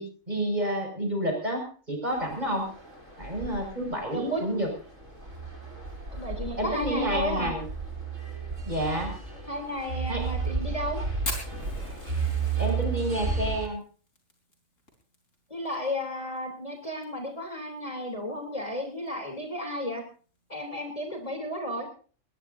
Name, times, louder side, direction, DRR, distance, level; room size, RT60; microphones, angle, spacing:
voice 1, 0.0-2.7 3.2-4.7 6.6-7.7 8.6-9.1 10.1-10.3 12.6-13.8, right 1 dB, 35° right, 2 dB, 6.4 m, -29 dB
sound 1, 2.1-13.7, right 5 dB, 85° right, 7.5 m, -33 dB
voice 2, 6.1-7.5 9.5-11.0 15.5-20.0 20.5-21.9, equal, 25° left, 2 dB, 3.6 m, -33 dB
Fire, 11.2-16.0 16.4-16.5 16.8-17.3 17.8-17.9 18.9-19.1, left 2 dB, 80° left, 4.7 m, -39 dB
20.5 x 20.5 x 2.7 m, 0.40 s
omnidirectional pair, 1.3 m